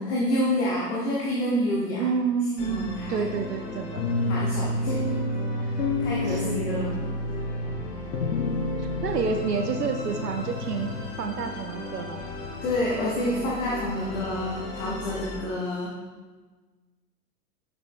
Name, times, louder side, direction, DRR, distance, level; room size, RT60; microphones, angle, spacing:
voice 1, 0.0-2.0 2.6-3.3 4.2-5.1 5.5-7.1 12.6-15.9, left 1 dB, 10° left, -5 dB, 0.4 m, -28 dB
voice 2, 2.0-4.0 6.3-6.8 8.8-12.2, right 5 dB, 75° right, 6 dB, 0.8 m, -29 dB
Musical instrument, 2.6-15.4, left 2 dB, 35° left, 2.0 m, -37 dB
sound 1, 4.0-11.0, left 2 dB, 80° left, 1.0 m, -29 dB
8.7 x 6.1 x 2.4 m, 1.3 s
figure-of-eight pair, 105°, 48 cm